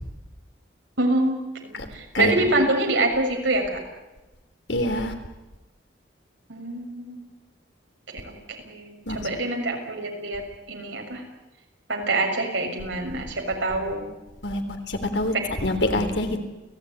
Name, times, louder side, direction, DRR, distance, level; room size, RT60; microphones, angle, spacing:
voice 1, 1.0-3.8 6.5-7.2 8.1-8.4 8.6-11.2 11.9-14.1 15.9-16.4, right 2 dB, 90° right, 2 dB, 6.5 m, -26 dB
voice 2, 2.1-2.6 4.7-5.1 9.1-9.3 14.4-15.3 15.6-16.4, left 1 dB, 70° left, 6 dB, 3.5 m, -25 dB
29.5 x 18.0 x 9.9 m, 1.1 s
head